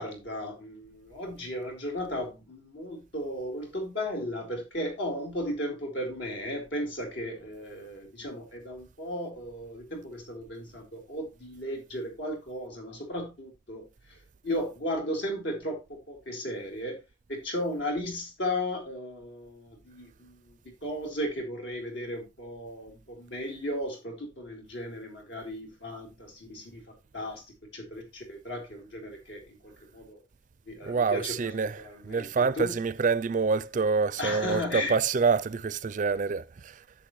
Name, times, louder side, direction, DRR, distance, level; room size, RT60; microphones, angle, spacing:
voice 1, 0.0-13.9 14.4-15.8 16.1-17.0 17.3-20.5 20.8-26.8 27.1-27.4 27.7-29.4 29.9-30.2 30.7-32.8 34.2-35.0, left 1 dB, 70° left, 4.0 m, -35 dB
voice 2, 30.9-36.7, right 5 dB, 40° right, 0.4 m, -27 dB
10.5 x 7.5 x 3.1 m
head